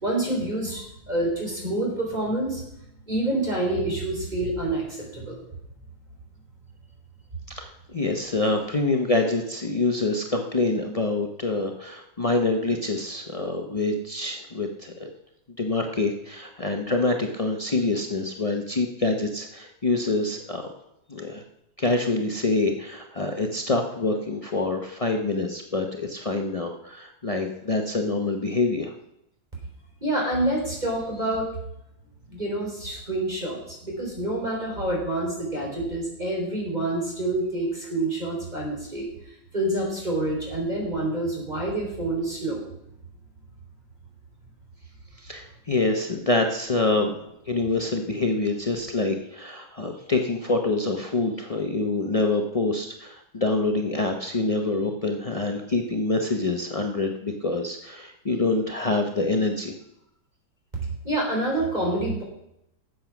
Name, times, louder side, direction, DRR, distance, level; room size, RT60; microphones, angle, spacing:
voice 1, 0.0-2.6 3.1-5.4 30.0-31.5 32.3-42.6 61.0-62.2, right 1 dB, 20° right, -2 dB, 4.2 m, -27 dB
voice 2, 7.5-15.1 15.6-20.7 21.1-21.4 21.8-28.9 45.2-47.2 47.5-59.7, left 2 dB, 50° left, 2 dB, 0.4 m, -26 dB
13.0 x 7.9 x 6.0 m, 0.80 s
omnidirectional pair, 2.2 m